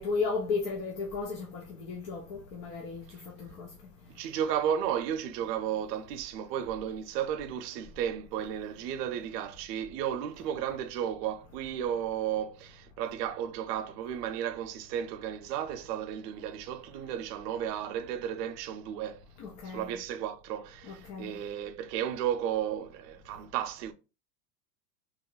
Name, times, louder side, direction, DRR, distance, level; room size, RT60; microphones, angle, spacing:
voice 1, 0.0-3.7 19.4-20.0 20.8-21.3, left 4 dB, 30° left, 0.4 m, -35 dB
voice 2, 4.1-19.2 19.7-23.9, right 9 dB, 90° right, 0.6 m, -33 dB
3.1 x 2.3 x 3.8 m
supercardioid pair, 160°, 47 cm